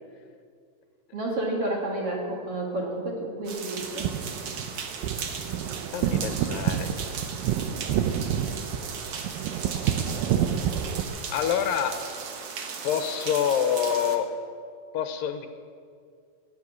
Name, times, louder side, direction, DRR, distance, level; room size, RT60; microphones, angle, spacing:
voice 1, 1.1-4.1 8.3-8.4, right 1 dB, 45° right, -1 dB, 2.6 m, -30 dB
sound 1, 3.4-14.2, right 6 dB, 60° right, 1.6 m, -37 dB
sound 2, 3.8-11.0, right 9 dB, 80° right, 2.4 m, -29 dB
voice 2, 5.9-6.9 11.3-12.0 12.8-14.3 14.9-15.5, left 8 dB, 75° left, 8 dB, 2.4 m, -26 dB
18.5 x 7.6 x 9.5 m, 2.2 s
omnidirectional pair, 4.2 m